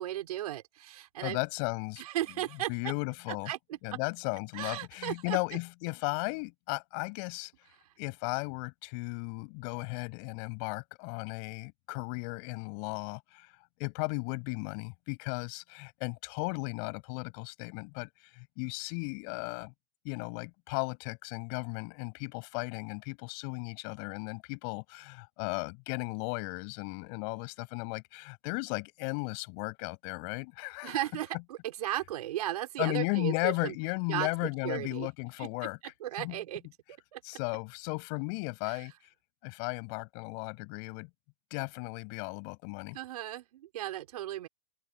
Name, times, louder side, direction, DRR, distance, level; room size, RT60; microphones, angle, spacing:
voice 1, 0.0-1.4 2.0-2.7 3.5-4.0 4.5-5.4 30.8-33.8 34.1-35.1 35.4-35.5 35.8-36.6 36.9-37.2 38.7-38.8 42.9-44.5, right 13 dB, 70° right, 3.6 m, -36 dB
voice 2, 1.2-2.0 2.7-3.5 3.8-7.5 8.0-13.5 13.8-18.1 18.4-19.7 20.0-31.0 32.8-35.8 36.2-36.4 37.2-38.9 39.4-41.1 41.5-43.0, left 37 dB, 45° left, 7.6 m, -35 dB
open air
hypercardioid pair, 140°, 20 cm